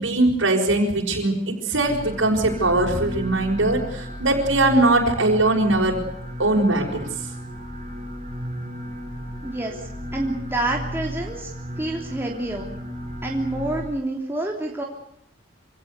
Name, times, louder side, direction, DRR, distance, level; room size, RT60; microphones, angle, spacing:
voice 1, 0.0-6.0 6.4-7.1, right 2 dB, 80° right, 1 dB, 5.8 m, -21 dB
sound 1, 1.8-13.9, equal, 35° right, 5.4 m, -34 dB
voice 2, 9.4-12.7 13.2-14.8, right 1 dB, 10° right, -1 dB, 3.3 m, -28 dB
27.0 x 17.5 x 8.3 m, 0.75 s
head